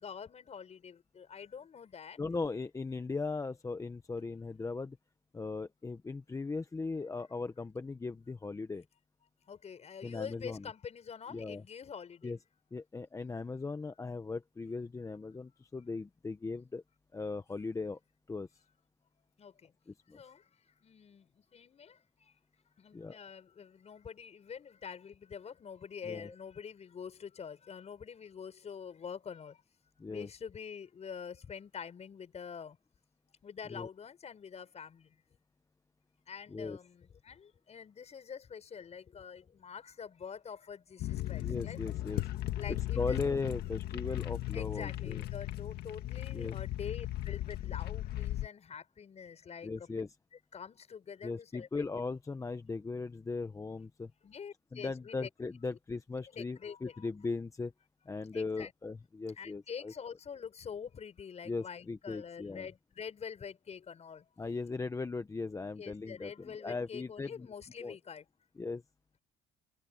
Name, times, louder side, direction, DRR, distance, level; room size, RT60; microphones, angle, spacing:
voice 1, 0.0-2.2 9.5-12.3 19.4-19.5 20.1-20.4 20.8-21.2 21.5-21.9 22.8-29.5 30.1-32.8 33.4-35.0 36.3-41.0 41.3-41.8 42.6-43.2 44.5-49.7 50.5-51.9 54.2-55.3 55.7-55.8 56.3-57.1 58.3-58.7 59.4-64.2 65.8-68.2, left 7 dB, 40° left, 6.9 m, -46 dB
voice 2, 2.2-5.0 5.3-8.8 10.0-10.7 11.3-11.6 12.2-12.4 12.7-16.8 17.1-18.0 18.3-18.5 19.9-20.2 22.9-23.2 26.0-26.3 30.0-30.3 33.7-33.9 36.5-36.8 41.4-42.2 42.7-45.2 46.3-46.6 49.6-50.1 51.2-54.1 54.7-57.7 58.1-59.9 61.4-62.7 64.4-67.5 67.8-67.9 68.6-68.8, left 3 dB, 20° left, 0.9 m, -38 dB
sound 1, 41.0-48.5, left 14 dB, 75° left, 1.7 m, -37 dB
cardioid pair, 110°, 17 cm